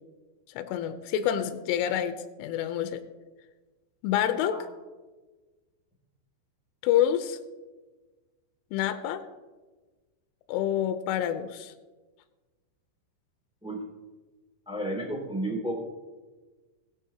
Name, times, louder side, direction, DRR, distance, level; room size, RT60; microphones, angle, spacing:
voice 1, 0.6-3.0 4.0-4.6 6.8-7.4 8.7-9.2 10.5-11.7, left 10 dB, 85° left, 9 dB, 3.2 m, -27 dB
voice 2, 14.6-15.7, right 1 dB, 10° right, -3 dB, 0.3 m, -32 dB
20.0 x 8.8 x 2.8 m, 1.3 s
omnidirectional pair, 5.6 m